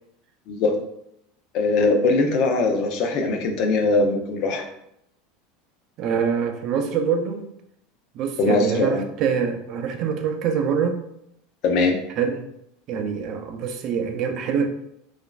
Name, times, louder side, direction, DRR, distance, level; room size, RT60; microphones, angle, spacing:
voice 1, 1.5-4.6 8.4-9.1 11.6-12.0, left 3 dB, 55° left, 4 dB, 0.5 m, -21 dB
voice 2, 6.0-7.4 8.1-11.0 12.2-12.5 12.9-14.7, right 6 dB, 50° right, 5 dB, 0.4 m, -25 dB
3.0 x 2.4 x 2.3 m, 0.77 s
supercardioid pair, 125°, 0 cm